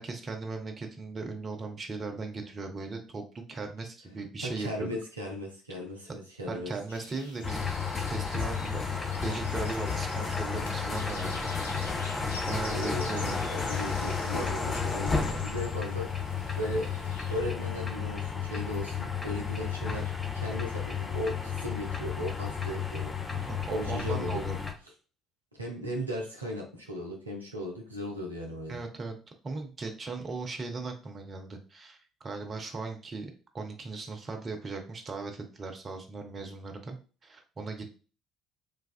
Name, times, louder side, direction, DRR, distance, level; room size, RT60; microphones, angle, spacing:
voice 1, 0.0-4.9 6.5-7.7 8.1-8.8 9.2-11.5 12.5-13.5 23.4-24.6 28.7-29.2 29.4-37.0 37.2-37.9, right 3 dB, 35° right, 4 dB, 0.6 m, -38 dB
voice 2, 4.4-6.7 12.7-16.9 17.3-24.5 25.5-28.8, equal, 85° right, 0 dB, 0.4 m, -37 dB
sound 1, 6.9-17.4, left 2 dB, 85° left, 0.4 m, -46 dB
sound 2, 7.4-24.7, left 5 dB, 25° left, 0.6 m, -32 dB
3.2 x 2.3 x 2.3 m, 0.36 s
figure-of-eight pair, 50°, 0 cm